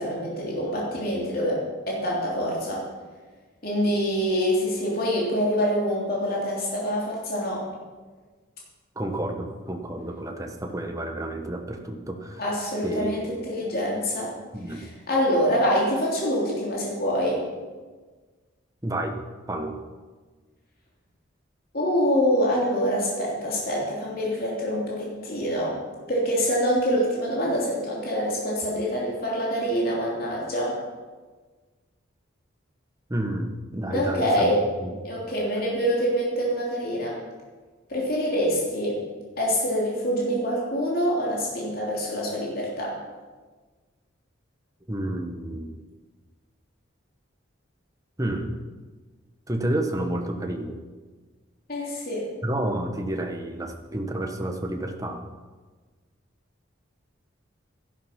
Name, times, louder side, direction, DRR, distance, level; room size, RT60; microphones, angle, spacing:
voice 1, 0.0-2.8 3.6-7.6 12.4-14.3 14.7-17.4 21.7-25.8 26.1-30.7 33.9-34.6 35.0-37.2 37.9-39.0 39.4-42.9 51.7-52.2, equal, 50° left, -4 dB, 3.2 m, -25 dB
voice 2, 9.0-12.4 12.8-13.4 14.5-14.8 18.8-19.2 19.5-19.8 33.1-34.5 34.8-34.9 44.9-45.8 48.2-48.5 49.5-50.7 52.4-55.2, right 1 dB, 15° right, 4 dB, 1.0 m, -30 dB
12.5 x 11.5 x 5.9 m, 1.4 s
head